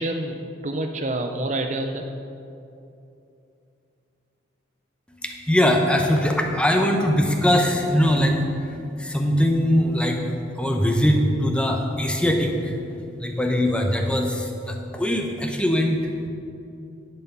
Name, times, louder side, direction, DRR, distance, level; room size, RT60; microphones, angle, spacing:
voice 1, 0.0-2.1, right 1 dB, 40° right, 5 dB, 0.6 m, -28 dB
voice 2, 5.1-16.3, equal, 5° left, 2 dB, 0.8 m, -22 dB
11.0 x 8.2 x 5.4 m, 2.7 s
head